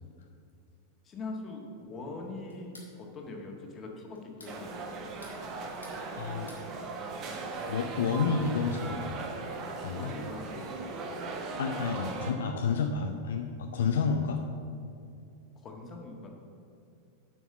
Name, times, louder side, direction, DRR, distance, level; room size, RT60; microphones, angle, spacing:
voice 1, 1.0-5.2 9.9-10.9 15.6-16.3, left 2 dB, 25° left, 1 dB, 1.6 m, -42 dB
sound 1, 2.5-2.9 4.1-4.6 5.0-6.0 6.3-6.7, left 2 dB, 80° left, 2.0 m, -52 dB
sound 2, 4.5-12.3, right 3 dB, 35° right, 1.1 m, -38 dB
voice 2, 6.2-6.7 7.7-9.2 9.8-10.2 11.6-14.5, left 5 dB, 60° left, 4 dB, 0.5 m, -30 dB
7.3 x 6.1 x 7.1 m, 2.5 s
figure-of-eight pair, 90°, 0 cm